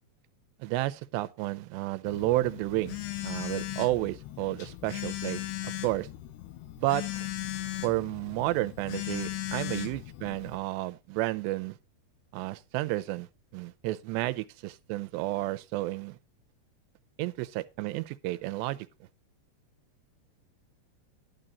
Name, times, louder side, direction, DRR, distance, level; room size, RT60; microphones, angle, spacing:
voice 1, 0.6-3.0 3.2-6.1 6.8-7.3 7.8-11.8 12.3-13.3 13.5-16.2 17.2-18.9, right 17 dB, 90° right, 2.9 m, -31 dB
Telephone, 2.1-10.6, left 14 dB, 85° left, 3.2 m, -37 dB
12.0 x 8.9 x 3.9 m
omnidirectional pair, 4.8 m